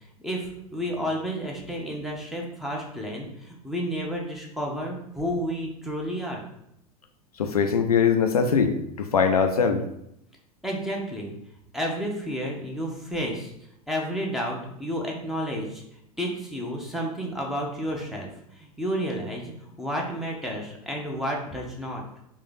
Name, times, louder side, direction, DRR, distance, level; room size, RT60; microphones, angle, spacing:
voice 1, 0.2-6.4 10.6-11.3 11.7-13.5 13.9-15.8 16.2-22.0, equal, ahead, -1 dB, 0.9 m, -31 dB
voice 2, 7.4-9.8, left 6 dB, 80° left, 6 dB, 0.5 m, -22 dB
3.3 x 3.1 x 4.0 m, 0.77 s
figure-of-eight pair, 85°, 19 cm